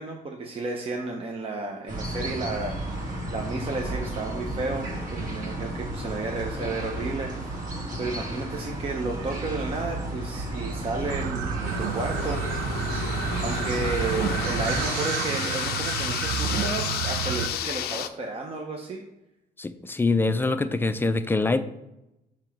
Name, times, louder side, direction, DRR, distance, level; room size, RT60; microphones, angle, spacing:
voice 1, 0.0-3.0 3.3-7.6 8.0-12.4 13.4-19.0, right 3 dB, 35° right, 1 dB, 0.8 m, -32 dB
sound 1, 1.9-14.8, right 1 dB, 50° right, 2.0 m, -32 dB
sound 2, 11.1-17.5, right 7 dB, 90° right, 0.6 m, -30 dB
sound 3, 11.6-18.1, left 12 dB, 70° left, 0.5 m, -33 dB
voice 2, 19.6-21.6, left 3 dB, 15° left, 11 dB, 0.4 m, -24 dB
6.9 x 3.0 x 5.9 m, 0.92 s
cardioid pair, 110°, 17 cm